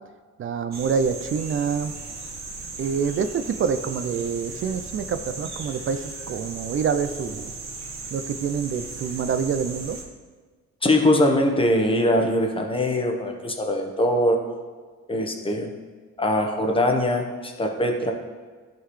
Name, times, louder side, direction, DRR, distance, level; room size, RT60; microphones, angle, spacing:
voice 1, 0.4-1.9 2.8-7.5 8.1-10.0, right 6 dB, 45° right, 11 dB, 0.4 m, -26 dB
sound 1, 0.7-10.0, right 3 dB, 60° right, 1.3 m, -37 dB
voice 2, 10.8-14.4 15.1-15.7 16.2-18.1, left 1 dB, 20° left, 3 dB, 1.0 m, -22 dB
11.0 x 3.9 x 3.2 m, 1.5 s
cardioid pair, 90°, 30 cm